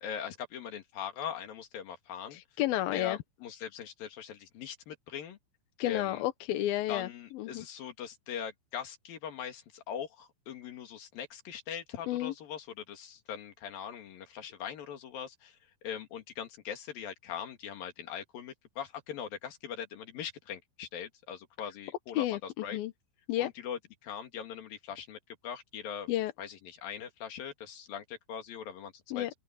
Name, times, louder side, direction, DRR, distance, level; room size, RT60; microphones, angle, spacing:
voice 1, 0.0-2.4 2.9-5.4 5.9-6.2 6.9-15.6 15.8-22.8 23.4-26.1 26.4-29.3, left 8 dB, 55° left, 3.6 m, -41 dB
voice 2, 2.3-3.2 5.8-7.1 7.3-7.6 12.1-12.3 22.2-22.9 23.3-23.5 26.1-26.3 29.1-29.3, left 14 dB, 70° left, 2.3 m, -31 dB
open air
omnidirectional pair, 5.4 m